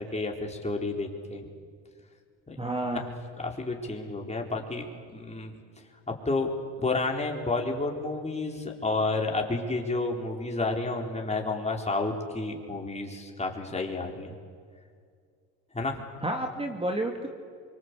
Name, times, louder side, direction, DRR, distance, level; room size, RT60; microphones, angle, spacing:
voice 1, 0.0-1.4 2.5-2.6 3.4-5.5 6.2-6.5 6.8-14.4 15.7-16.0, left 3 dB, 20° left, 1 dB, 4.3 m, -30 dB
voice 2, 2.6-3.1 16.2-17.3, right 1 dB, 15° right, 3 dB, 2.4 m, -30 dB
25.0 x 25.0 x 8.4 m, 2.2 s
supercardioid pair, 85°, 37 cm